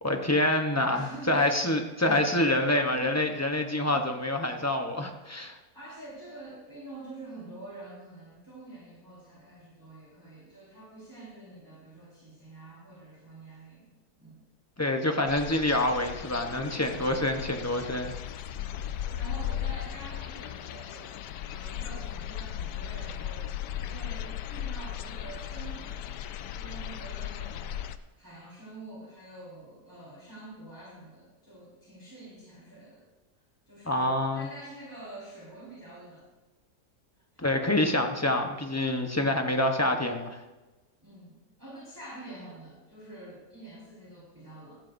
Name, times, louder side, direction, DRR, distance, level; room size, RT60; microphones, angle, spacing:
voice 1, 0.0-5.5 14.8-18.2 33.9-34.5 37.4-40.4, left 1 dB, 15° left, 4 dB, 0.5 m, -27 dB
voice 2, 0.9-1.6 2.0-2.2 2.7-3.4 3.9-4.0 5.7-13.9 14.2-14.4 18.5-18.7 19.1-21.1 21.4-26.2 26.5-27.8 28.2-33.0 33.7-36.3 37.3-37.5 41.0-44.8, right 2 dB, 10° right, -7 dB, 4.5 m, -46 dB
sound 1, 15.3-28.0, left 10 dB, 85° left, 1.2 m, -37 dB
15.5 x 14.0 x 2.6 m, 1.1 s
omnidirectional pair, 1.8 m